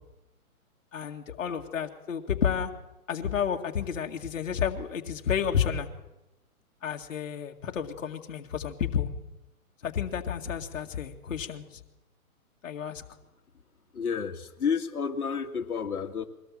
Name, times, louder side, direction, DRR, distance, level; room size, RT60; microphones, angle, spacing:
voice 1, 0.9-2.7 3.1-5.9 6.8-9.1 9.8-11.6 12.6-13.0, left 8 dB, 60° left, 3 dB, 2.1 m, -31 dB
voice 2, 13.9-16.3, left 6 dB, 85° left, 3 dB, 2.2 m, -30 dB
23.5 x 18.0 x 7.5 m, 0.96 s
hypercardioid pair, 170°, 43 cm